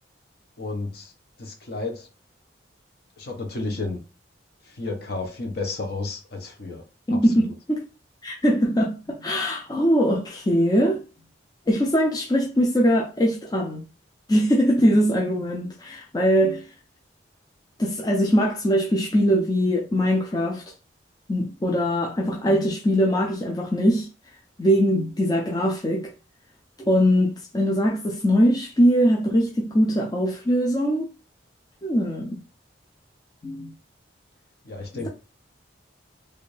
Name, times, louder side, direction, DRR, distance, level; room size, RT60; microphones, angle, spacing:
voice 1, 0.6-1.1 1.4-2.1 3.2-4.0 4.7-6.8 7.1-7.5 34.6-35.1, left 3 dB, 55° left, 0.9 m, -32 dB
voice 2, 7.1-7.8 8.2-11.0 11.7-13.8 14.3-16.7 17.8-20.6 21.3-24.1 24.6-26.1 26.8-31.1 31.8-32.4 33.4-33.7 34.9-35.1, equal, 20° left, 0.5 m, -21 dB
3.2 x 2.5 x 3.2 m
head